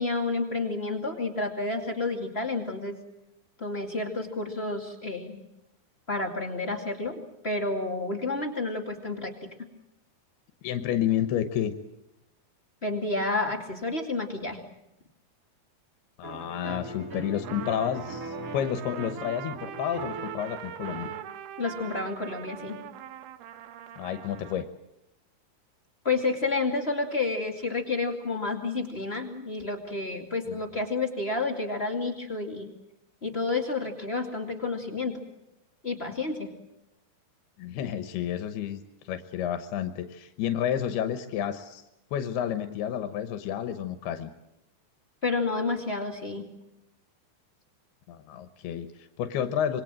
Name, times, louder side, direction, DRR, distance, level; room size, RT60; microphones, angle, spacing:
voice 1, 0.0-3.0 3.6-5.4 6.1-9.5 12.8-14.6 21.6-22.8 26.0-32.7 33.2-35.2 35.8-36.5 45.2-46.5, left 3 dB, 20° left, 2 dB, 1.9 m, -30 dB
voice 2, 10.6-11.7 16.2-21.1 24.0-24.7 30.5-30.6 37.6-41.8 42.1-44.3 48.1-49.8, left 10 dB, 85° left, 9 dB, 3.1 m, -30 dB
sound 1, 16.2-21.2, right 1 dB, 25° right, 3.2 m, -40 dB
Trumpet, 17.4-24.7, right 11 dB, 85° right, 3.0 m, -42 dB
26.5 x 23.0 x 7.6 m, 0.87 s
omnidirectional pair, 4.4 m